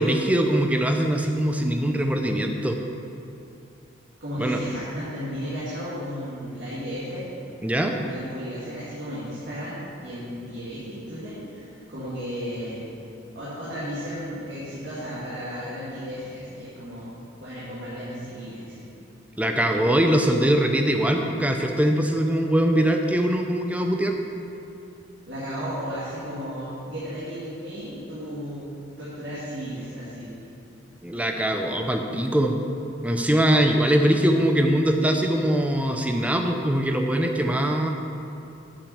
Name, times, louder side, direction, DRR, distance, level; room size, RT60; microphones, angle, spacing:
voice 1, 0.0-2.8 4.4-4.6 7.6-8.0 19.4-24.1 31.0-32.5 33.0-37.9, right 1 dB, 5° right, 3 dB, 0.5 m, -22 dB
voice 2, 4.2-7.3 7.9-12.9 13.3-17.1 17.4-18.9 25.3-28.6 29.0-30.3, equal, 60° right, -10 dB, 2.2 m, -34 dB
8.4 x 5.7 x 7.1 m, 2.7 s
head